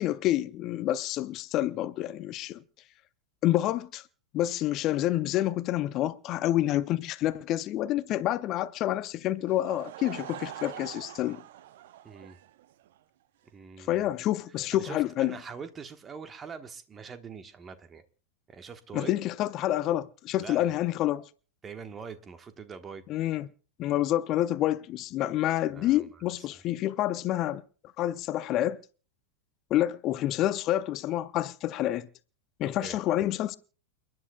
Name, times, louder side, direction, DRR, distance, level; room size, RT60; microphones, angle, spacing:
voice 1, 0.0-2.6 3.4-4.1 4.3-11.4 13.8-15.4 18.9-21.2 23.1-23.5 23.8-27.6 28.0-28.8 29.7-32.1 32.6-33.6, left 14 dB, 35° left, 0.5 m, -28 dB
Laughter / Crowd, 9.4-13.0, right 12 dB, 55° right, 0.6 m, -44 dB
voice 2, 12.0-12.4 13.5-14.1 14.7-18.0 18.5-19.1 20.4-20.7 21.6-23.0 25.7-26.6 32.8-33.0, right 6 dB, 20° right, 1.2 m, -43 dB
29.5 x 10.5 x 2.2 m
figure-of-eight pair, 90°, 0 cm